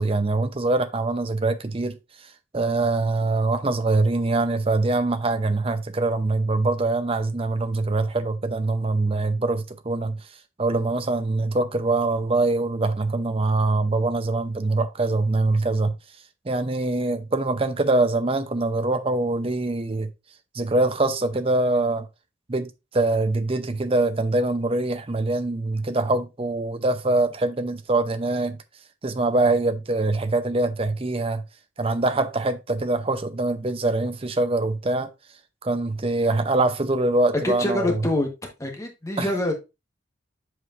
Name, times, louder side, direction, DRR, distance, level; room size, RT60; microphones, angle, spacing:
voice 1, 0.0-2.0 2.5-10.2 10.6-15.9 16.5-20.1 20.5-22.1 22.5-28.6 29.0-31.4 31.8-35.1 35.6-37.8 39.2-39.3, right 2 dB, 30° right, 0.6 m, -23 dB
voice 2, 37.4-38.3 38.6-39.5, left 2 dB, 15° left, 1.2 m, -25 dB
8.0 x 4.9 x 2.5 m
head